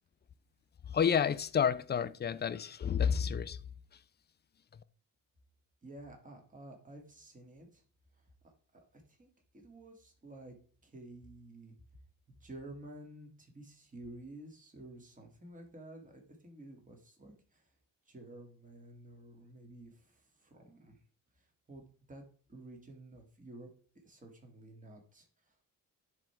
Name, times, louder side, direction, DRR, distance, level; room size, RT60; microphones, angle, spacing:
voice 1, 0.9-3.6, left 7 dB, 30° left, 0.5 m, -30 dB
voice 2, 5.8-7.8 8.4-9.3 9.5-10.6 10.8-11.7 12.4-17.7 18.1-21.0 21.4-22.2 22.5-23.7 24.0-25.7, right 1 dB, 25° right, 2.1 m, -52 dB
10.0 x 3.6 x 4.5 m
cardioid pair, 105°, 34 cm